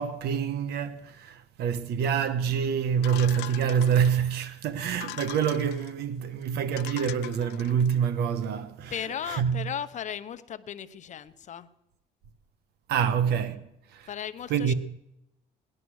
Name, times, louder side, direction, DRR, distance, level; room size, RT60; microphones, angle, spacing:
voice 1, 0.0-8.9 9.3-9.6 12.9-13.6 13.9-14.1 14.5-14.7, right 8 dB, 75° right, 1.3 m, -26 dB
sound 1, 3.0-4.3 4.9-5.9 6.4-6.5 6.8-8.0, left 18 dB, 85° left, 0.5 m, -41 dB
voice 2, 8.9-11.7 14.1-14.7, left 9 dB, 45° left, 0.8 m, -36 dB
18.5 x 11.0 x 6.4 m
cardioid pair, 110°, 17 cm